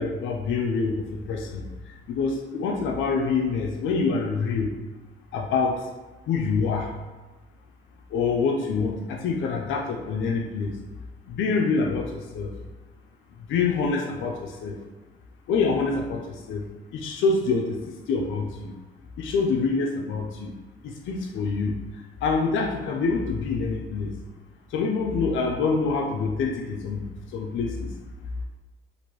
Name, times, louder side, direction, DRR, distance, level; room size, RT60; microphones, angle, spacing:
voice 1, 0.0-1.7 2.1-4.7 5.3-5.8 6.3-6.9 8.1-10.8 11.3-12.5 13.5-14.8 15.5-16.6 16.9-17.8 18.1-18.7 19.2-20.5 20.8-21.7 22.2-24.1 24.7-27.1 27.3-27.9, left 4 dB, 75° left, 1 dB, 0.4 m, -26 dB
2.9 x 2.5 x 3.0 m, 1.2 s
cardioid pair, 90°, 20 cm